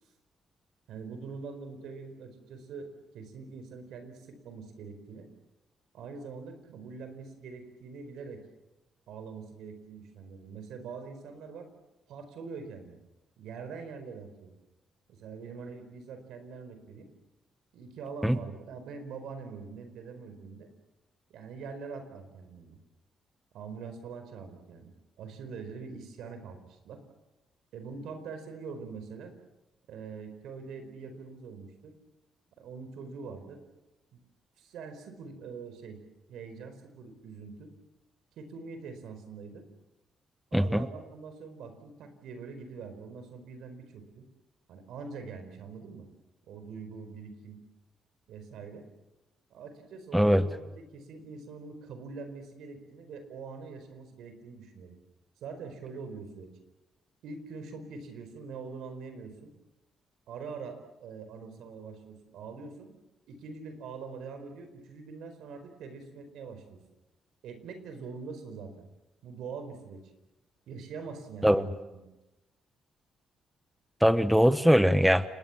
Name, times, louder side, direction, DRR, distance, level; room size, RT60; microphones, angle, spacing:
voice 1, 0.9-5.3 5.9-8.4 9.1-11.7 12.1-13.0 13.4-14.5 15.1-17.1 17.7-20.7 21.3-22.8 23.5-27.0 27.7-29.3 29.9-31.9 32.6-33.6 34.1-34.2 34.6-36.0 36.3-37.7 38.4-39.6 40.5-44.3 44.7-46.1 46.5-47.6 48.3-48.9 49.5-54.9 55.4-56.5 57.2-59.5 60.3-62.9 63.3-66.8 67.4-68.9 69.2-70.0 70.7-72.0, right 5 dB, 80° right, 8 dB, 4.5 m, -43 dB
voice 2, 40.5-40.9 50.1-50.5 71.4-71.6 74.0-75.2, equal, ahead, 12 dB, 1.0 m, -21 dB
30.0 x 20.0 x 7.3 m, 1.0 s
cardioid pair, 90°, 0 cm